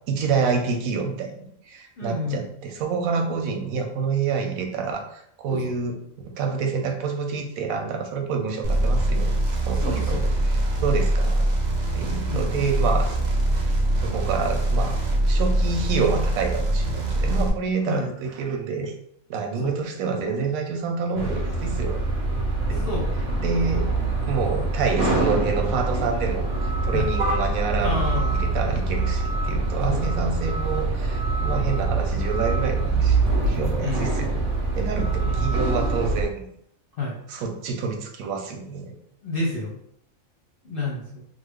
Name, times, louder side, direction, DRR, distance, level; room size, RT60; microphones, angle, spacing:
voice 1, 0.1-6.0 6.2-9.4 9.7-11.5 11.9-13.2 14.0-18.9 19.3-22.0 22.7-22.9 23.4-23.9 24.3-26.5 26.8-34.4 34.8-36.4 37.3-39.0, right 5 dB, 90° right, 4 dB, 1.0 m, -28 dB
voice 2, 2.0-2.5 5.5-5.8 9.7-10.2 12.3-12.5 17.9-18.1 19.6-19.7 22.8-23.1 26.9-27.1 27.8-28.4 29.9-30.1 33.8-34.1 35.2-35.5 37.0-37.2 39.2-39.8 40.6-41.2, left 2 dB, 55° left, -4 dB, 0.7 m, -29 dB
sound 1, 8.6-17.5, right 1 dB, 50° right, 0.5 m, -23 dB
sound 2, 21.2-36.3, right 3 dB, 65° right, 0.9 m, -24 dB
3.1 x 2.0 x 3.4 m, 0.70 s
omnidirectional pair, 1.4 m